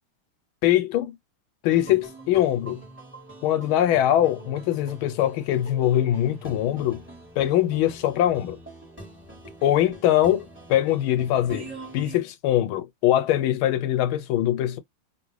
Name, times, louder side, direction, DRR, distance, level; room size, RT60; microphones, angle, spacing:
voice 1, 0.6-1.1 1.6-2.8 3.4-7.0 7.4-8.6 9.6-11.7 11.9-14.8, left 12 dB, 85° left, 1.4 m, -22 dB
sound 1, 1.7-12.2, right 2 dB, 5° right, 1.3 m, -44 dB
2.9 x 2.8 x 3.1 m
omnidirectional pair, 2.3 m